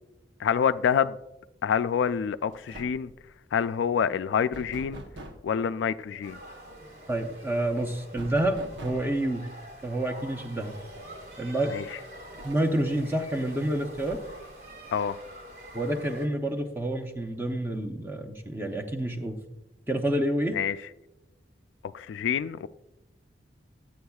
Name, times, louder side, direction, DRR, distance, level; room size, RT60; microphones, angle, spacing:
voice 1, 0.4-1.2 1.6-3.1 3.5-5.0 5.4-6.4 11.7-11.8 14.9-15.2 20.5-20.8 21.9-22.7, left 7 dB, 75° left, 0.3 m, -27 dB
sound 1, 2.1-2.3 2.5-3.2 4.5-5.5 8.2-9.2 10.8-10.9 11.3-11.4 12.4-13.0 13.9-14.6, right 1 dB, 75° right, 0.9 m, -44 dB
sound 2, 6.2-16.3, right 1 dB, 60° right, 1.9 m, -46 dB
voice 2, 7.1-9.5 9.8-10.8 11.4-11.7 12.4-14.2 15.7-19.4 19.9-20.6, right 1 dB, 10° right, 0.7 m, -28 dB
13.0 x 8.6 x 2.3 m
head